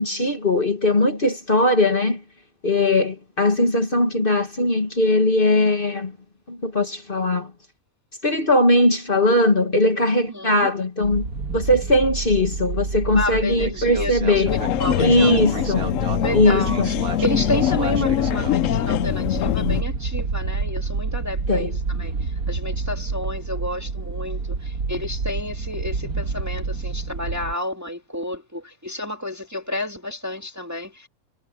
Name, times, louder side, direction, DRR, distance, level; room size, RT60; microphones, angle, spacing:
voice 1, 0.0-2.2 2.6-6.1 6.5-7.5 8.2-11.3 11.5-14.5 15.0-15.9 16.3-16.9 21.5-21.7, left 1 dB, 35° left, 2.1 m, -19 dB
voice 2, 10.3-10.7 13.1-15.4 16.1-31.1, left 1 dB, 10° right, 2.0 m, -31 dB
sound 1, 11.0-27.5, right 4 dB, 75° right, 2.2 m, -29 dB
sound 2, 14.5-19.8, left 12 dB, 65° left, 0.9 m, -23 dB
omnidirectional pair, 1.6 m